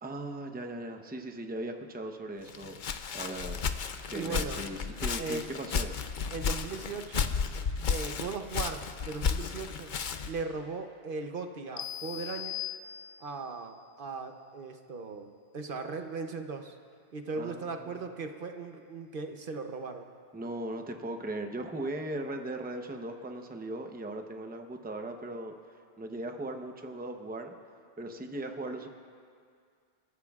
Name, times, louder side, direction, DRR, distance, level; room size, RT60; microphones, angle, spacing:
voice 1, 0.0-2.8 3.1-3.6 4.1-5.9 17.4-18.0 20.3-25.5 26.0-27.5 28.0-28.9, right 1 dB, 10° right, 4 dB, 0.7 m, -38 dB
Walk footsteps, 2.5-10.4, left 6 dB, 55° left, 0.7 m, -33 dB
voice 2, 4.1-4.6 5.2-5.5 6.3-7.3 7.9-9.9 10.3-12.6 13.2-16.8 17.1-20.1, right 4 dB, 60° right, 5 dB, 0.9 m, -38 dB
sound 1, 11.8-13.5, left 13 dB, 85° left, 0.9 m, -39 dB
29.5 x 14.5 x 2.4 m, 2.2 s
omnidirectional pair, 1.0 m